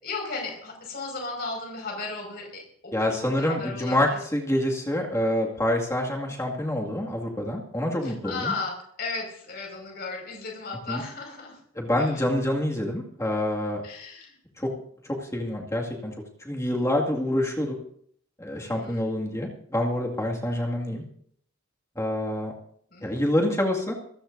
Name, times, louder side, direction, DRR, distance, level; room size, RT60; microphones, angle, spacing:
voice 1, 0.0-4.2 8.0-11.6 12.0-12.2 13.8-14.4 18.6-19.1 22.9-23.2, left 3 dB, 45° left, 1 dB, 5.4 m, -35 dB
voice 2, 2.9-8.5 10.9-11.0 11.8-13.8 14.6-14.7 15.2-16.1 16.4-17.8 18.4-21.0 22.0-22.5 23.0-23.9, left 1 dB, 15° left, -1 dB, 2.1 m, -27 dB
25.0 x 14.0 x 2.6 m, 0.65 s
head